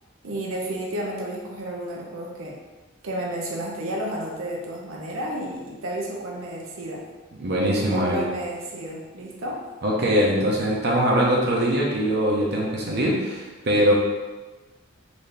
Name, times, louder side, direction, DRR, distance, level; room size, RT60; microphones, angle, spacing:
voice 1, 0.2-2.6 3.0-7.0 7.8-9.6, right 1 dB, 90° right, -2 dB, 0.6 m, -32 dB
voice 2, 7.4-8.2 9.8-13.9, equal, 55° right, -3 dB, 0.7 m, -22 dB
4.0 x 2.7 x 3.3 m, 1.2 s
head